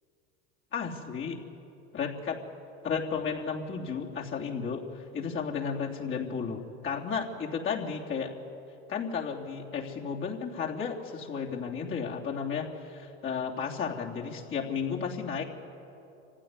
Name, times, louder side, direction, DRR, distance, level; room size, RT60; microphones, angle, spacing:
voice 1, 0.7-1.4 1.9-2.4 2.8-8.3 8.9-15.4, left 6 dB, 35° left, -2 dB, 3.2 m, -33 dB
25.0 x 16.0 x 9.8 m, 2.9 s
supercardioid pair, 105°, 33 cm